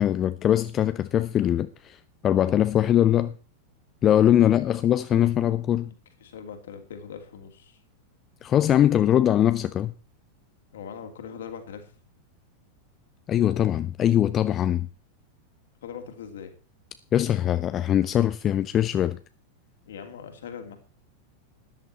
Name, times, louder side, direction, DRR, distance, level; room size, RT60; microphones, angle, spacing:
voice 1, 0.0-3.3 4.0-5.9 8.4-9.9 13.3-14.9 17.1-19.2, left 11 dB, 30° left, 0.6 m, -22 dB
voice 2, 4.4-5.0 5.9-6.0 6.2-7.8 10.7-11.9 15.8-16.5 19.9-20.8, left 7 dB, 60° left, 2.8 m, -41 dB
13.5 x 11.0 x 4.4 m
figure-of-eight pair, 90°, 0 cm